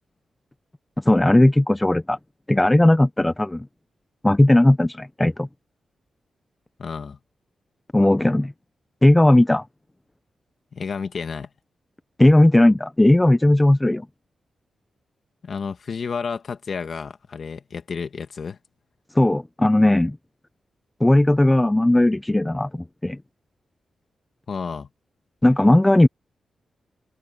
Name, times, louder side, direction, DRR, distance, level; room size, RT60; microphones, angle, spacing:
voice 1, 1.1-2.2 2.5-3.7 4.2-5.5 7.9-8.5 9.0-9.6 12.2-14.1 19.2-20.2 21.0-23.2 25.4-26.1, left 1 dB, 10° left, 0.6 m, -17 dB
voice 2, 6.8-7.2 10.7-11.5 15.4-18.6 24.5-24.9, left 5 dB, 50° left, 2.0 m, -31 dB
wide cardioid pair, 130°, 0 cm